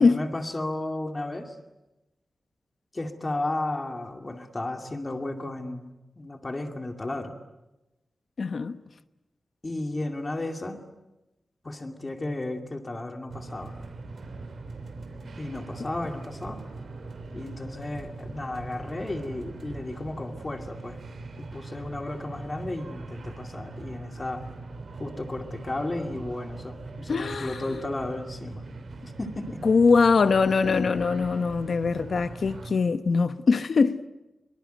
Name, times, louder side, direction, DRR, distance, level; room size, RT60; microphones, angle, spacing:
voice 1, 0.0-1.6 2.9-7.3 9.6-10.8 11.6-13.7 15.4-16.6 17.3-21.0 21.4-24.4 25.0-28.6 29.0-29.6, left 2 dB, 25° left, 2.5 m, -33 dB
voice 2, 8.4-8.8 27.1-27.6 29.6-34.1, left 4 dB, 60° left, 1.1 m, -22 dB
sound 1, 13.3-32.7, right 3 dB, 65° right, 3.1 m, -41 dB
24.0 x 24.0 x 9.3 m
wide cardioid pair, 180°, 0 cm